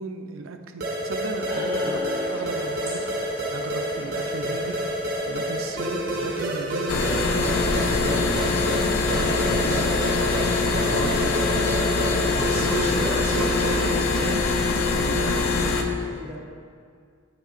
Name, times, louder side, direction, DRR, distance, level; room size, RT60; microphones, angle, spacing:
voice 1, 0.0-4.8 5.3-8.3 9.2-9.8 10.8-11.3 12.5-15.5, right 4 dB, 85° right, 6 dB, 0.5 m, -35 dB
sound 1, 0.8-14.1, right 1 dB, 50° right, 0.9 m, -29 dB
sound 2, 1.5-6.5, left 2 dB, 15° left, 1.7 m, -35 dB
sound 3, 6.9-15.8, left 3 dB, 90° left, 0.5 m, -23 dB
voice 2, 9.4-10.3 15.1-16.4, equal, 15° right, -7 dB, 1.0 m, -41 dB
8.6 x 6.4 x 2.5 m, 2.1 s
head